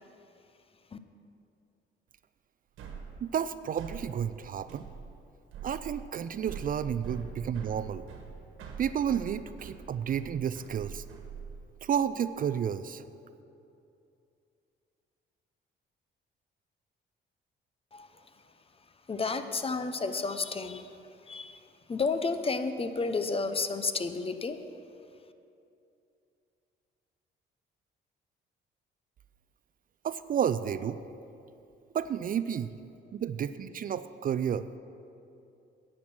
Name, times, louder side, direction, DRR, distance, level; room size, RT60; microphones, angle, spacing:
sound 1, 2.8-11.9, right 5 dB, 85° right, 1.3 m, -44 dB
voice 1, 3.2-4.9 5.6-8.0 8.8-11.0 11.8-13.0 30.0-31.0 31.9-32.7 33.1-34.8, right 8 dB, 45° right, 13 dB, 0.4 m, -31 dB
voice 2, 19.1-20.9 21.2-21.6 21.9-24.6, left 4 dB, 30° left, 10 dB, 0.7 m, -31 dB
10.5 x 8.8 x 6.0 m, 2.7 s
cardioid pair, 90°, 20 cm